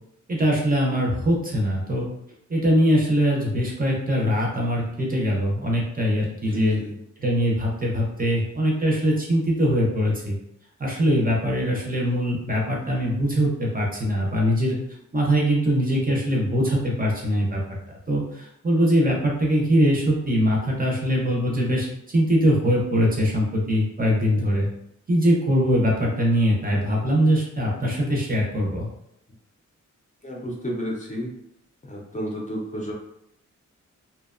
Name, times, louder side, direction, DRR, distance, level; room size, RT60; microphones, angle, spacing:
voice 1, 0.3-2.1 2.5-6.8 7.2-10.3 10.8-14.8 15.1-17.6 18.1-24.7 25.1-28.9, equal, 30° right, -2 dB, 0.5 m, -22 dB
voice 2, 6.5-7.0 30.2-31.3 31.8-32.9, equal, 25° left, -3 dB, 0.5 m, -31 dB
2.7 x 2.1 x 2.4 m, 0.79 s
wide cardioid pair, 145°, 30 cm